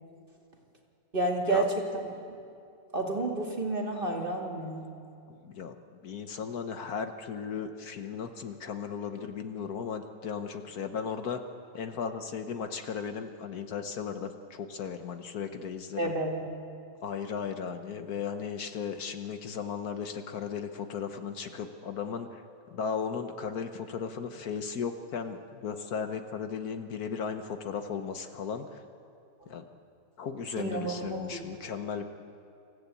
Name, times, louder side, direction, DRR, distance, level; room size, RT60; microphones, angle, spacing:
voice 1, 1.1-1.7 2.9-4.8 16.0-16.3 30.6-31.5, right 2 dB, 30° right, 0 dB, 2.4 m, -30 dB
voice 2, 5.3-11.4 11.7-16.1 17.0-22.4 22.7-28.8 29.5-29.7 30.2-32.0, left 6 dB, 65° left, 7 dB, 1.4 m, -36 dB
25.5 x 15.0 x 8.3 m, 2.6 s
omnidirectional pair, 1.8 m